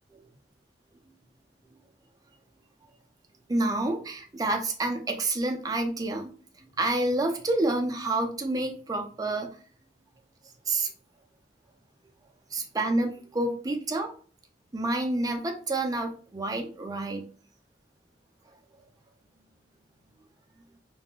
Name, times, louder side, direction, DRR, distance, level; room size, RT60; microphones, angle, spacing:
voice 1, 3.5-6.3 6.6-9.5 10.7-10.9 12.5-14.1 14.7-17.3, right 2 dB, 20° right, 4 dB, 0.4 m, -28 dB
2.3 x 2.1 x 3.5 m, 0.41 s
head